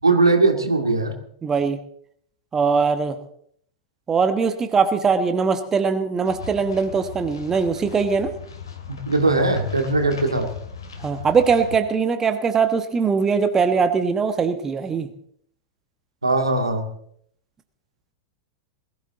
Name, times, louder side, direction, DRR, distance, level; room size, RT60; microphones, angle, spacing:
voice 1, 0.0-1.1 8.9-10.5 16.2-16.9, right 3 dB, 80° right, 5 dB, 2.2 m, -20 dB
voice 2, 1.4-1.8 2.5-3.2 4.1-8.3 11.0-15.1, right 5 dB, 20° right, 8 dB, 1.2 m, -21 dB
sound 1, 6.2-11.8, left 6 dB, 70° left, 2.7 m, -38 dB
20.5 x 14.5 x 3.9 m, 0.65 s
figure-of-eight pair, 90°, 2 cm